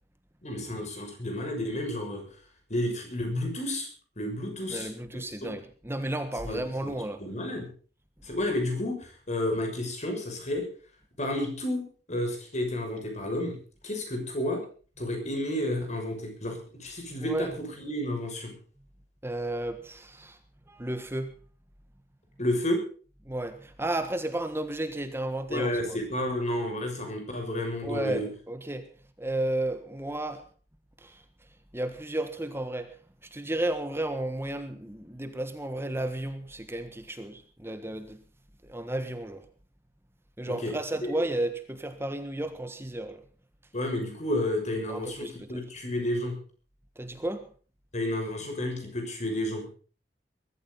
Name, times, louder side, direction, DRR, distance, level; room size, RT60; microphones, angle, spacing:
voice 1, 0.4-2.2 2.7-3.9 4.2-5.5 6.4-6.9 7.2-7.7 8.2-10.6 11.2-13.6 13.8-14.6 15.0-18.5 22.4-22.8 25.5-28.3 40.4-40.7 41.0-41.1 43.7-46.4 47.9-49.7, left 1 dB, 40° left, 6.5 m, -31 dB
voice 2, 4.7-7.2 17.2-17.5 19.2-20.4 20.7-21.3 23.2-26.0 27.8-28.9 29.2-30.5 31.0-31.2 31.7-38.2 38.6-39.5 40.4-43.2 44.9-45.6 46.9-47.5, right 1 dB, 15° right, 1.5 m, -33 dB
22.0 x 14.0 x 4.1 m
head